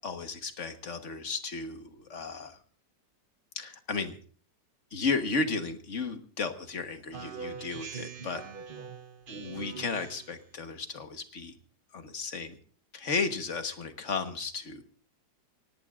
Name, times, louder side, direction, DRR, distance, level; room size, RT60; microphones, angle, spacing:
voice 1, 0.0-2.6 3.5-4.1 4.9-8.4 9.3-11.5 11.9-12.5 12.9-14.8, left 4 dB, 45° left, 7 dB, 1.6 m, -34 dB
Speech synthesizer, 7.1-10.5, right 6 dB, 45° right, 0.7 m, -42 dB
24.5 x 18.5 x 2.5 m, 0.43 s
omnidirectional pair, 1.9 m